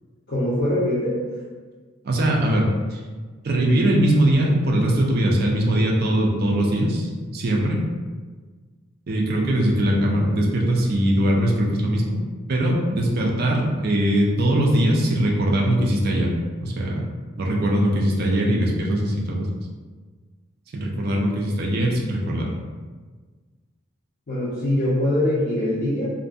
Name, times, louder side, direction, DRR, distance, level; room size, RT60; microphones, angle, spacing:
voice 1, 0.3-1.2 24.3-26.1, left 1 dB, 45° left, -9 dB, 0.5 m, -22 dB
voice 2, 2.0-3.0 3.4-7.8 9.1-12.1 12.5-16.3 16.6-17.0 17.4-19.5 20.7-22.5, right 1 dB, 45° right, -1 dB, 0.4 m, -21 dB
2.6 x 2.5 x 2.3 m, 1.4 s
head